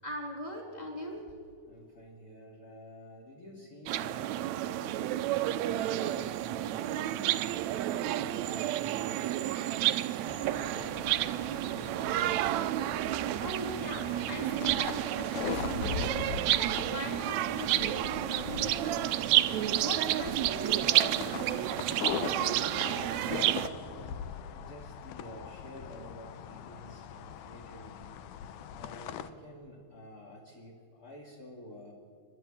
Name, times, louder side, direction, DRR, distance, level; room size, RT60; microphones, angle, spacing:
voice 1, 0.0-1.2 13.4-21.6, left 1 dB, 10° left, 0 dB, 3.4 m, -41 dB
voice 2, 1.7-7.6 7.8-9.4 9.6-12.5 22.5-28.2 28.7-31.9, equal, 30° left, -3 dB, 2.6 m, -49 dB
sound 1, 3.9-23.7, right 14 dB, 80° right, 1.6 m, -30 dB
sound 2, 10.3-29.3, left 8 dB, 75° left, 2.2 m, -41 dB
29.5 x 11.0 x 8.6 m, 2.3 s
omnidirectional pair, 3.8 m